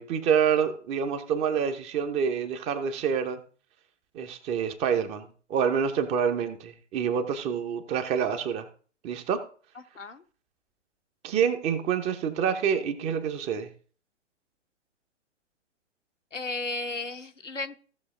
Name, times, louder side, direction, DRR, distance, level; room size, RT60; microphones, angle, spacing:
voice 1, 0.0-3.4 4.1-8.7 9.0-9.4 11.2-13.7, right 7 dB, 15° right, 8 dB, 0.8 m, -27 dB
voice 2, 9.7-10.2 16.3-17.8, left 3 dB, 80° left, 6 dB, 1.2 m, -34 dB
16.0 x 6.4 x 3.7 m, 0.41 s
figure-of-eight pair, 120°, 36 cm